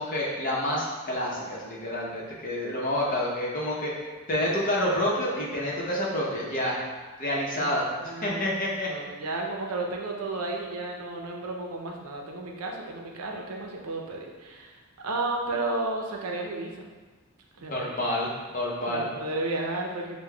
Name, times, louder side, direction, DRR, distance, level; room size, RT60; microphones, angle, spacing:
voice 1, 0.0-3.9 4.3-6.8 7.2-8.9 17.7-19.1, left 1 dB, 40° left, -4 dB, 0.7 m, -28 dB
voice 2, 8.0-8.4 8.9-16.9 17.6-17.9 18.9-20.2, right 2 dB, 85° right, 1 dB, 0.6 m, -33 dB
6.4 x 2.2 x 2.3 m, 1.3 s
head